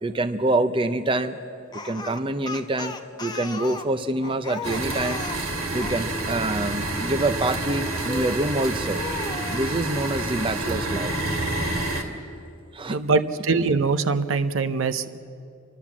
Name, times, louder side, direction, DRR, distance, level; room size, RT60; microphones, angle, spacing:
voice 1, 0.0-1.4 1.7-5.2 5.7-9.0 9.5-11.2 12.7-13.0, right 2 dB, 25° right, 9 dB, 0.6 m, -26 dB
Speech, 1.7-6.0 8.0-8.5 8.9-9.8, left 3 dB, 20° left, 0.9 m, -36 dB
sound 1, 4.6-12.0, right 2 dB, 80° right, 2.3 m, -28 dB
voice 2, 12.9-15.2, right 4 dB, 65° right, 11 dB, 0.8 m, -23 dB
29.5 x 12.0 x 7.3 m, 2.5 s
head